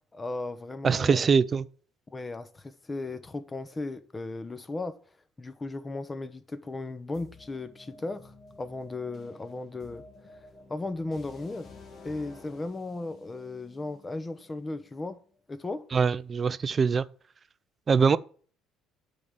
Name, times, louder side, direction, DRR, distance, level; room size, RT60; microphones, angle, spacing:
voice 1, 0.1-1.3 2.1-5.0 5.4-10.0 10.7-11.7 12.0-15.2 15.5-15.8, left 2 dB, 20° left, 1.0 m, -36 dB
voice 2, 0.8-1.6 15.9-17.0 17.9-18.2, right 5 dB, 35° right, 0.5 m, -23 dB
sound 1, 7.1-15.0, left 3 dB, 50° left, 2.1 m, -52 dB
8.3 x 3.8 x 6.7 m
supercardioid pair, 80°, 0 cm